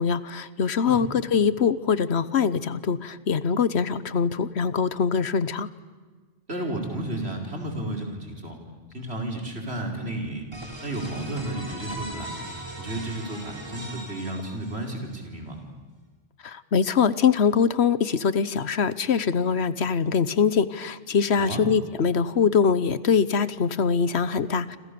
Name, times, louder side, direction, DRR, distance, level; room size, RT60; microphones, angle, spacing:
voice 1, 0.0-5.7 16.4-24.8, left 6 dB, 80° left, 16 dB, 1.3 m, -23 dB
voice 2, 6.5-8.6 8.9-10.5 10.8-12.3 12.7-15.6 21.4-21.6, right 1 dB, 75° right, 2 dB, 5.1 m, -32 dB
sound 1, 10.5-15.1, right 1 dB, 25° right, 4.3 m, -38 dB
29.0 x 26.5 x 6.9 m, 1.4 s
omnidirectional pair, 1.1 m